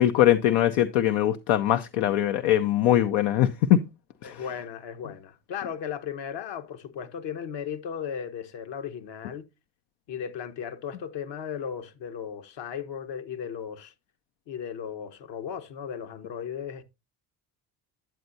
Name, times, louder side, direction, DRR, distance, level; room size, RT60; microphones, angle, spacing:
voice 1, 0.0-3.8 4.2-4.4, left 12 dB, 75° left, 0.7 m, -22 dB
voice 2, 4.2-9.5 10.1-13.9 14.5-16.8, left 8 dB, 60° left, 1.2 m, -36 dB
9.2 x 8.0 x 2.6 m
hypercardioid pair, 60°, 47 cm